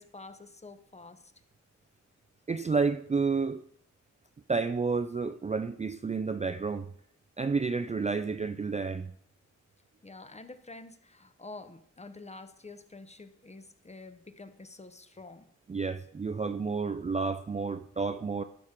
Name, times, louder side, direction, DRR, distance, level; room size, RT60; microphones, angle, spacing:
voice 1, 0.0-1.3 10.0-15.5, left 3 dB, 20° left, 0.7 m, -48 dB
voice 2, 2.5-3.6 4.5-6.9 7.4-9.1 15.7-18.4, right 4 dB, 25° right, 0.4 m, -30 dB
11.5 x 6.3 x 3.7 m
cardioid pair, 65°, 30 cm